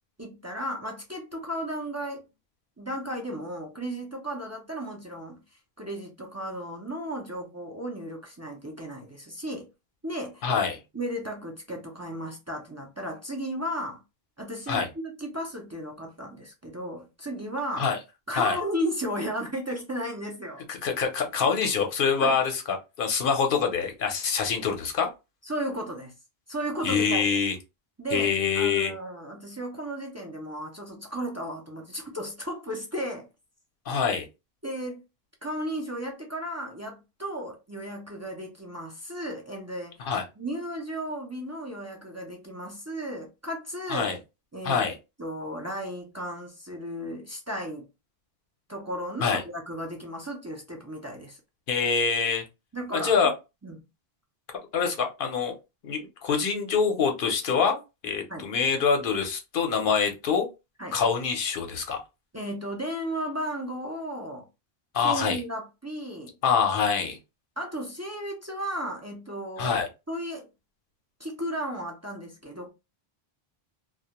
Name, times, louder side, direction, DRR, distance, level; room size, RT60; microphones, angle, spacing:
voice 1, 0.2-2.2 2.8-5.4 5.8-9.7 10.0-10.5 10.9-14.0 14.4-17.9 18.3-20.6 22.2-22.4 25.4-26.1 26.5-27.3 28.0-33.3 34.6-35.0 35.4-40.0 40.4-44.2 44.5-44.9 45.2-47.9 48.7-51.4 52.7-53.1 53.6-53.8 58.3-58.5 60.8-61.0 62.3-64.5 65.0-66.3 67.6-69.8 70.1-70.5 71.2-72.7, equal, 25° right, 0.3 m, -34 dB
voice 2, 10.4-10.8 14.7-14.9 17.8-18.0 18.4-18.6 20.7-25.1 26.8-27.6 28.1-28.9 33.9-34.3 40.0-40.2 43.9-44.2 44.6-45.0 49.2-49.4 51.7-52.4 52.9-53.3 54.7-55.5 55.8-57.8 58.0-60.5 60.9-62.0 64.9-65.4 66.4-67.2 69.6-69.9, left 6 dB, 60° left, 0.8 m, -25 dB
2.2 x 2.1 x 2.8 m
omnidirectional pair, 1.0 m